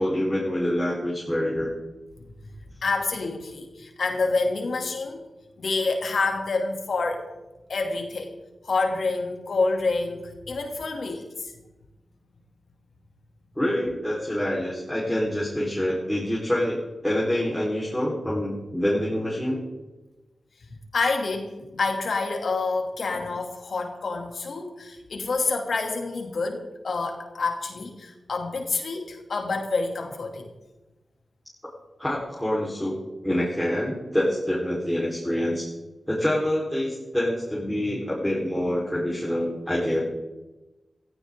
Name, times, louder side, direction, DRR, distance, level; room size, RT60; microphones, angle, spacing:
voice 1, 0.0-1.7 13.5-19.6 32.0-32.9 33.2-35.7 36.1-40.0, left 1 dB, 5° left, -6 dB, 4.4 m, -26 dB
voice 2, 2.8-5.2 5.6-7.3 7.7-8.3 8.6-11.5 20.9-30.5, left 3 dB, 80° left, 2 dB, 2.8 m, -27 dB
17.5 x 15.0 x 3.8 m, 1.1 s
wide cardioid pair, 70°, 0 cm